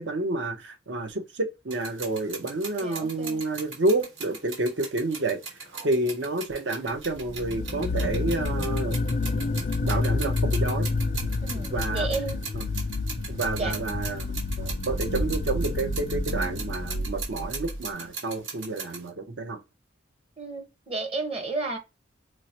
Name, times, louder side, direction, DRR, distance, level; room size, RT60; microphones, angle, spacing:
voice 1, 0.0-5.4 5.8-9.0 9.3-9.5 9.8-10.9 11.7-12.1 12.5-12.6 13.3-19.6, right 2 dB, 65° right, 0.7 m, -29 dB
sound 1, 1.7-19.1, right 5 dB, 90° right, 1.4 m, -39 dB
voice 2, 2.8-3.4 11.4-12.5 13.6-13.8 20.4-21.8, right 3 dB, 35° right, 0.9 m, -32 dB
sound 2, 7.2-17.8, left 2 dB, 45° left, 0.4 m, -29 dB
4.5 x 2.0 x 2.8 m
head